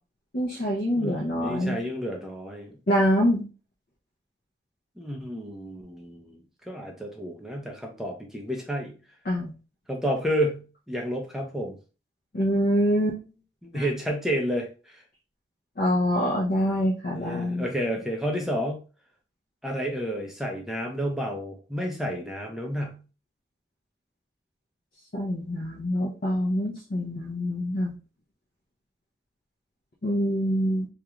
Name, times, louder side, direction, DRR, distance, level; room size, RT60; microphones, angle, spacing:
voice 1, 0.3-1.8 2.9-3.5 9.3-9.5 12.3-13.2 13.7-13.9 15.8-17.7 25.1-27.9 30.0-30.9, equal, 50° left, -2 dB, 0.5 m, -25 dB
voice 2, 1.0-2.8 5.0-9.0 9.9-11.8 13.6-15.0 17.1-18.8 19.6-23.0, equal, ahead, 1 dB, 0.5 m, -31 dB
2.4 x 2.2 x 2.9 m, 0.34 s
head